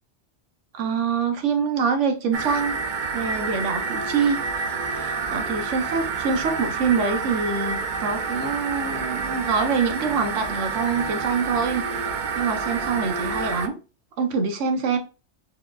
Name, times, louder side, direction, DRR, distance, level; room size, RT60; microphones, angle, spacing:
voice 1, 0.7-2.7 3.1-4.4 4.9-13.8 14.2-15.0, right 5 dB, 85° right, 1.2 m, -25 dB
sound 1, 2.3-13.7, right 5 dB, 60° right, 0.6 m, -28 dB
4.7 x 4.0 x 2.4 m
omnidirectional pair, 1.2 m